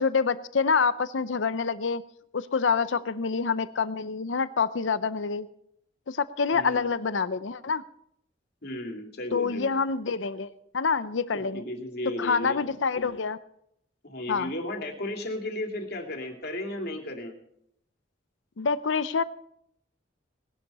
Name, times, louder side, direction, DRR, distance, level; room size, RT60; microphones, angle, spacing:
voice 1, 0.0-2.0 2.3-5.5 6.1-7.8 9.3-11.6 12.2-13.4 14.3-14.5 18.6-19.2, left 5 dB, 90° left, 15 dB, 0.6 m, -27 dB
voice 2, 6.6-6.9 8.6-9.7 11.3-12.6 14.0-17.3, left 1 dB, 60° left, 3 dB, 2.6 m, -34 dB
19.0 x 11.5 x 4.3 m, 0.72 s
head